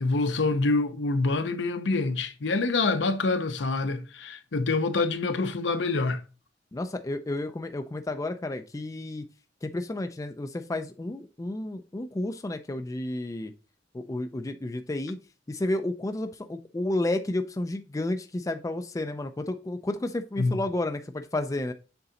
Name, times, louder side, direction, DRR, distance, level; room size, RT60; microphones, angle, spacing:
voice 1, 0.0-6.2 20.4-20.6, left 3 dB, 70° left, 0.7 m, -26 dB
voice 2, 6.7-9.2 9.6-13.5 13.9-15.2 15.5-21.7, left 2 dB, 20° left, 0.4 m, -31 dB
6.9 x 3.9 x 3.7 m
head